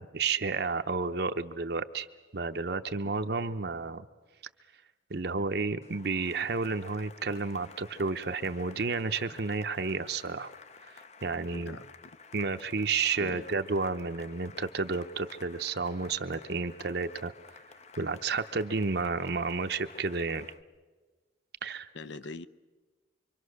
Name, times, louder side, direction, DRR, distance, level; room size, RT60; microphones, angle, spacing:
voice 1, 0.0-2.1 2.3-4.0 5.1-10.5 11.2-11.8 12.3-17.3 18.0-20.5 21.6-21.9, right 4 dB, 55° right, 0.7 m, -31 dB
Cheering / Applause, 5.8-20.6, left 5 dB, 35° left, 0.6 m, -52 dB
voice 2, 11.5-12.2 13.2-13.5 21.9-22.5, left 3 dB, 70° left, 0.7 m, -42 dB
25.0 x 24.5 x 6.5 m
head